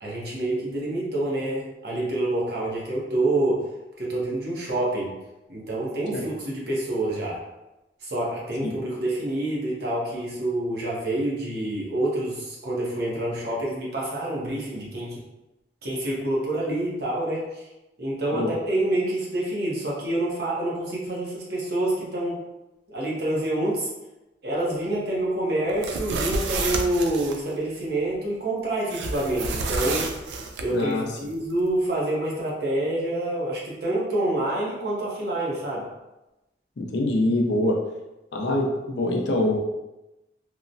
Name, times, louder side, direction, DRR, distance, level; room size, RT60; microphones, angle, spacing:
voice 1, 0.0-3.6 4.0-5.1 5.5-7.4 8.0-15.2 15.8-17.7 18.0-22.4 22.9-23.9 24.4-30.1 30.6-35.9, right 1 dB, 60° right, -5 dB, 0.8 m, -27 dB
sound 1, 25.7-27.4 28.9-30.7, right 3 dB, 75° right, 0.3 m, -29 dB
voice 2, 30.7-31.1 36.8-37.8 38.3-39.6, left 1 dB, 70° left, 1 dB, 0.4 m, -24 dB
2.9 x 2.1 x 2.5 m, 0.99 s
head